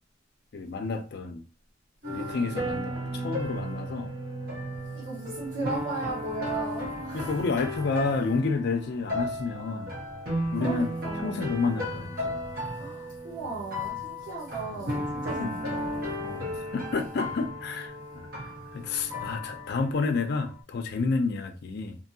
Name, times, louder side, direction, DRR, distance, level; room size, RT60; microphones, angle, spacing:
voice 1, 0.5-1.4 2.1-4.1 7.1-9.9 10.5-10.9 11.2-12.4 14.7-15.0 15.4-15.5 16.2-18.3 18.7-22.0, left 4 dB, 55° left, 0.4 m, -30 dB
sound 1, 2.0-20.6, equal, 55° right, 1.1 m, -35 dB
voice 2, 4.9-7.4 10.6-11.5 12.7-16.1, right 3 dB, 80° right, 1.1 m, -37 dB
2.7 x 2.6 x 2.6 m
head